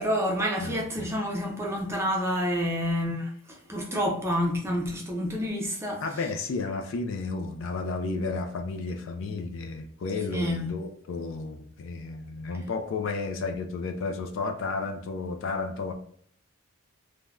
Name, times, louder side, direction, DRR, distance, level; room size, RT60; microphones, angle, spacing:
voice 1, 0.0-6.0 10.3-10.7, equal, 10° right, 0.5 m, -28 dB
voice 2, 0.6-1.1 6.0-15.9, left 3 dB, 60° left, 0.3 m, -32 dB
3.3 x 2.1 x 2.4 m
head